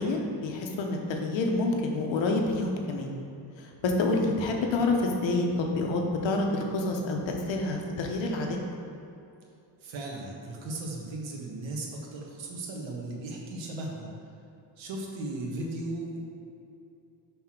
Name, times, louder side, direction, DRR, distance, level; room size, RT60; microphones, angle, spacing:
voice 1, 0.0-3.1 3.8-8.6, left 2 dB, 80° left, 2 dB, 1.1 m, -28 dB
voice 2, 9.8-14.1 14.8-16.2, right 2 dB, 85° right, -1 dB, 1.4 m, -36 dB
5.8 x 4.2 x 5.9 m, 2.7 s
cardioid pair, 110°, 44 cm